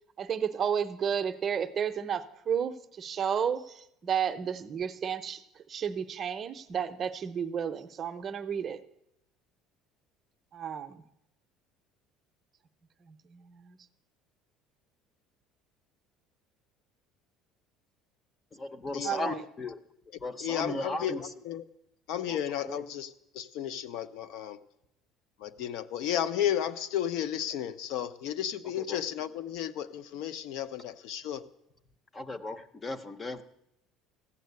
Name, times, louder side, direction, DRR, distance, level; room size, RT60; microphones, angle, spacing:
voice 1, 0.2-5.4 5.7-8.8 10.5-11.0 13.1-13.8 19.0-19.4, right 8 dB, 25° right, 8 dB, 0.6 m, -32 dB
voice 2, 18.5-19.8 20.2-21.3 22.3-22.4 22.6-22.8 28.8-29.0 32.1-33.4, left 2 dB, 15° left, 12 dB, 0.7 m, -36 dB
voice 3, 20.4-21.1 21.4-21.6 22.1-24.6 25.4-31.4, left 10 dB, 65° left, 13 dB, 0.7 m, -33 dB
14.5 x 7.4 x 9.4 m, 0.81 s
cardioid pair, 170°, 0 cm